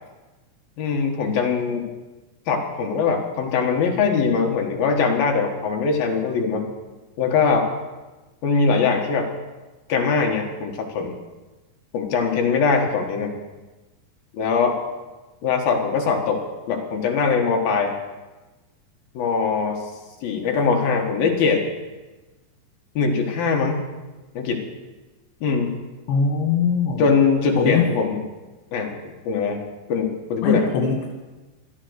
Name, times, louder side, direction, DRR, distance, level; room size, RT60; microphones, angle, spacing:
voice 1, 0.8-1.9 2.5-6.7 7.2-7.7 8.4-9.3 9.9-11.1 11.9-13.3 14.3-14.8 15.4-17.9 19.1-19.8 20.2-21.6 23.0-23.8 24.3-24.6 25.4-25.7 27.0-28.2 28.7-29.6 29.9-30.7, left 5 dB, 65° left, 2 dB, 3.1 m, -22 dB
voice 2, 26.1-27.0 27.6-27.9 30.4-31.1, left 6 dB, 80° left, 0 dB, 4.0 m, -21 dB
17.0 x 13.0 x 6.4 m, 1.2 s
omnidirectional pair, 5.0 m